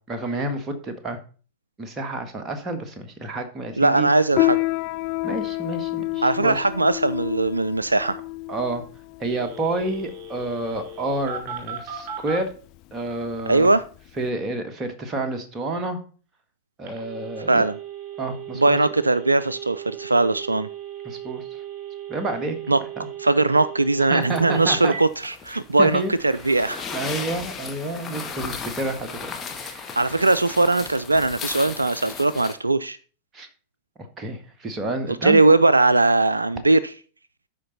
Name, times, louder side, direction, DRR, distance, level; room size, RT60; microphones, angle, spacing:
voice 1, 0.1-1.2 1.8-4.1 5.2-6.6 8.5-8.8 9.2-12.5 12.9-13.7 14.2-16.0 16.8-17.6 18.2-18.8 21.0-21.6 22.1-22.6 23.0-23.1 24.1-24.9 25.8-26.1 26.9-29.2 29.5-29.9 33.3-33.5 34.2-35.4, right 2 dB, 20° right, 1.7 m, -29 dB
voice 2, 3.8-4.6 6.2-8.2 13.5-13.8 17.5-17.7 18.6-20.7 22.7-22.8 23.2-26.9 30.0-33.0 35.2-36.9, right 2 dB, 80° right, 0.3 m, -20 dB
Piano, 4.3-14.3, left 20 dB, 40° left, 0.5 m, -29 dB
Telephone, 9.3-12.4 16.9-25.0, right 7 dB, 45° right, 3.7 m, -37 dB
sound 1, 24.2-32.5, left 5 dB, 20° left, 1.4 m, -36 dB
12.5 x 5.1 x 4.1 m
figure-of-eight pair, 90°, 0 cm